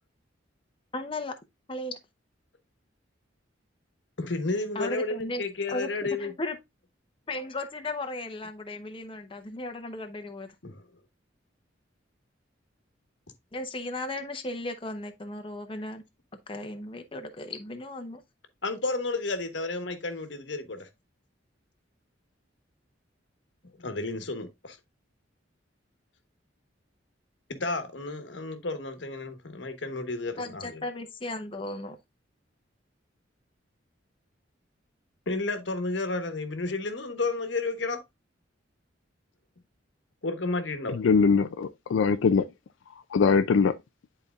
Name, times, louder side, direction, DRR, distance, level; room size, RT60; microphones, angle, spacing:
voice 1, 0.9-1.3 1.7-2.0 4.7-5.4 5.7-6.6 7.3-10.5 13.5-16.0 16.5-18.2 30.4-32.0, left 2 dB, 30° left, 0.8 m, -36 dB
voice 2, 4.2-6.3 10.6-10.8 18.6-20.9 23.8-24.8 27.5-30.9 35.3-38.0 40.2-41.0, left 3 dB, 65° left, 1.2 m, -32 dB
voice 3, 40.9-42.5 43.1-43.8, left 5 dB, 80° left, 0.4 m, -22 dB
10.5 x 4.2 x 2.4 m
head